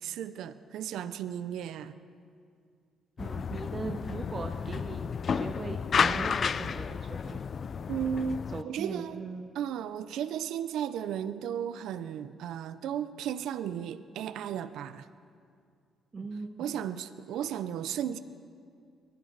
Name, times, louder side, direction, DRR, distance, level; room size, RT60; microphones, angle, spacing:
voice 1, 0.0-2.0 7.9-9.2 9.5-15.1 16.6-18.2, right 9 dB, 80° right, 13 dB, 0.6 m, -35 dB
sound 1, 3.2-8.6, left 6 dB, 50° left, 0.3 m, -31 dB
voice 2, 3.2-5.0 5.3-7.4 8.5-9.5 16.1-16.5, right 4 dB, 35° right, 4 dB, 0.8 m, -39 dB
21.0 x 13.0 x 4.0 m, 2.3 s
cardioid pair, 90°, 0 cm